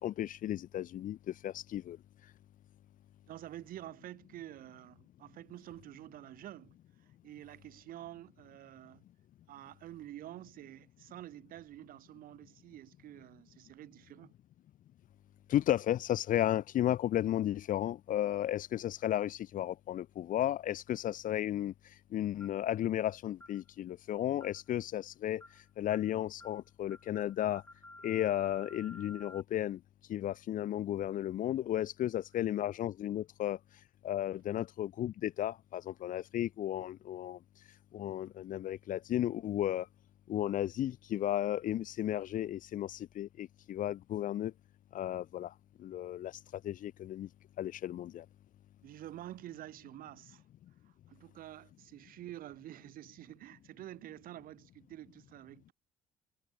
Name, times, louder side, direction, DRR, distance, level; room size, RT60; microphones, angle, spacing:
voice 1, 0.0-2.0 15.5-21.7 22.1-25.4 25.8-27.6 28.0-29.8 30.1-33.6 34.0-37.4 37.9-39.9 40.3-44.5 44.9-45.5 45.8-47.3 47.6-48.2, left 12 dB, 50° left, 1.5 m, -34 dB
voice 2, 3.3-9.0 9.5-14.3 48.8-50.4 50.8-55.7, right 13 dB, 55° right, 5.4 m, -49 dB
sound 1, 22.4-22.7 23.4-23.6 24.4-24.7 25.4-25.6 25.9-26.1 26.4-26.6 26.9-29.4, left 2 dB, 10° left, 6.5 m, -53 dB
figure-of-eight pair, 50°, 17 cm